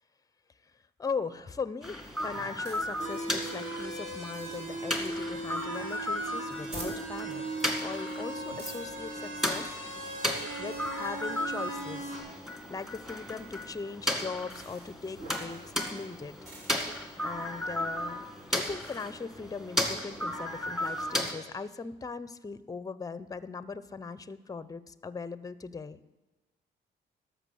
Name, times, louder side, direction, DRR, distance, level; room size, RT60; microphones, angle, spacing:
voice 1, 1.0-7.4 7.8-9.8 10.6-12.1 12.7-16.4 17.2-26.0, left 4 dB, 20° left, 15 dB, 0.5 m, -39 dB
sound 1, 1.8-21.3, left 1 dB, ahead, 1.8 m, -35 dB
sound 2, 2.2-19.1, right 1 dB, 55° right, 3.0 m, -51 dB
sound 3, 3.0-12.2, right 2 dB, 40° right, 3.8 m, -38 dB
12.5 x 6.1 x 6.9 m, 1.1 s
cardioid pair, 90°, 20 cm